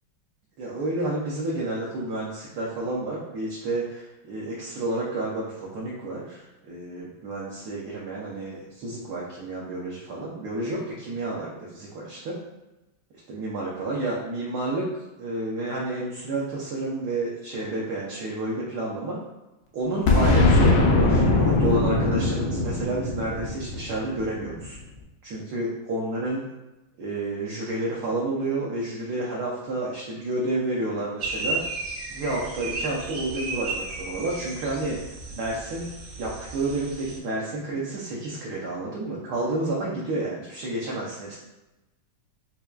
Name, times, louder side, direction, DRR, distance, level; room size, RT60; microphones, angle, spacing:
voice 1, 0.6-12.4 13.3-14.9 15.2-19.2 19.7-24.8 25.2-26.4 27.0-31.6 32.1-35.9 36.2-41.4, right 2 dB, 70° right, -5 dB, 1.0 m, -30 dB
Boom, 20.1-24.7, left 2 dB, 75° left, 1.3 m, -21 dB
sound 1, 31.2-37.2, right 3 dB, 85° right, 2.0 m, -34 dB
5.7 x 2.2 x 2.3 m, 1.0 s
omnidirectional pair, 2.3 m